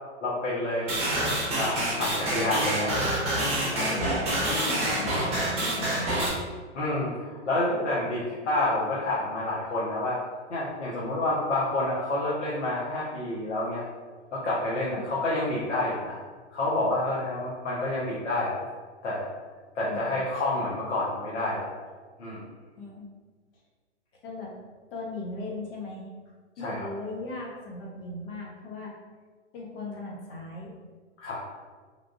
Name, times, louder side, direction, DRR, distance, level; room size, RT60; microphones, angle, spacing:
voice 1, 0.2-0.9 1.2-3.0 3.7-4.1 4.4-4.5 6.7-10.2 10.5-13.8 14.3-16.2 16.5-18.6 19.0-19.3 19.7-21.7 22.2-22.4 26.6-26.9 31.2-31.4, left 2 dB, 75° left, -6 dB, 0.9 m, -29 dB
sound 1, 0.9-6.3, right 1 dB, 15° right, 0.8 m, -27 dB
voice 2, 3.9-6.3 14.8-15.1 19.8-20.1 22.8-23.1 24.2-24.5 24.9-26.1 26.6-28.9 29.5-30.7, left 2 dB, 50° left, -2 dB, 1.0 m, -38 dB
3.4 x 2.4 x 2.5 m, 1.4 s
hypercardioid pair, 120°, 36 cm